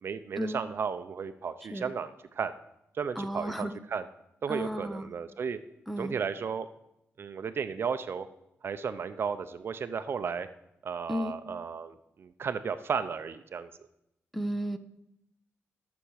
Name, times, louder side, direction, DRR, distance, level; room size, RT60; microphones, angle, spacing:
voice 1, 0.0-2.5 2.9-4.1 4.4-5.6 6.0-6.7 7.2-8.3 8.6-10.5 10.8-13.7, right 6 dB, 55° right, 11 dB, 0.6 m, -34 dB
voice 2, 3.2-3.7 4.5-5.1 5.9-6.2 11.1-11.3 14.3-14.8, equal, ahead, 7 dB, 0.7 m, -33 dB
13.0 x 7.0 x 6.4 m, 0.84 s
wide cardioid pair, 130°, 5 cm